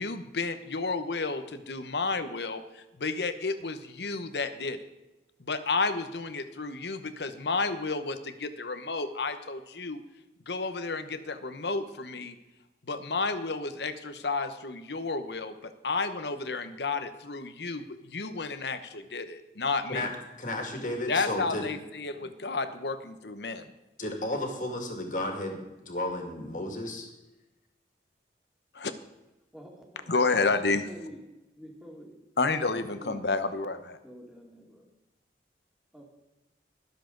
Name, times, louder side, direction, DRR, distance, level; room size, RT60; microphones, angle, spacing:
voice 1, 0.0-4.8 5.4-10.0 10.5-12.4 12.9-20.1 21.1-23.7 28.7-28.9 30.1-30.8 32.4-34.0, left 3 dB, 75° left, 10 dB, 1.0 m, -31 dB
voice 2, 20.4-21.7 24.0-25.6 25.9-27.1, left 1 dB, 45° left, 2 dB, 2.2 m, -33 dB
voice 3, 29.5-31.2 31.6-32.2 32.5-33.3 34.0-34.9 35.9-36.0, equal, 5° right, -1 dB, 2.2 m, -47 dB
22.0 x 7.5 x 3.9 m, 1.0 s
head